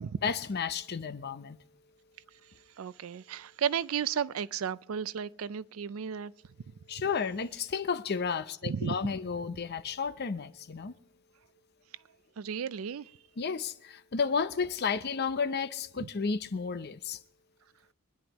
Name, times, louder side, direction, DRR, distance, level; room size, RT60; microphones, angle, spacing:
voice 1, 0.0-1.6 6.9-10.9 13.4-17.2, left 5 dB, 50° left, 0.6 m, -32 dB
voice 2, 2.8-6.3 8.6-9.0 12.4-13.1 16.0-16.1, right 7 dB, 70° right, 0.4 m, -33 dB
24.0 x 10.5 x 3.0 m
head